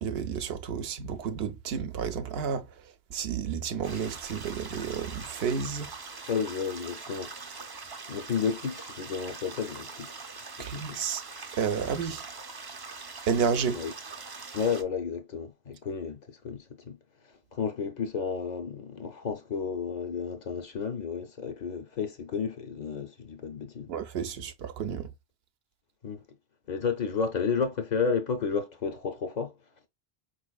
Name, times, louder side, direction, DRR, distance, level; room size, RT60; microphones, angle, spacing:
voice 1, 0.0-5.9 10.6-11.2 11.6-12.3 13.3-13.8 23.9-25.1, right 6 dB, 75° right, 0.8 m, -31 dB
sound 1, 3.8-14.8, right 4 dB, 35° right, 0.4 m, -43 dB
voice 2, 6.3-7.3 8.1-10.3 10.6-11.0 13.7-13.9 14.5-17.0 17.5-23.9 26.0-26.2 26.7-29.6, left 6 dB, 50° left, 0.6 m, -32 dB
4.5 x 3.1 x 2.2 m
omnidirectional pair, 1.1 m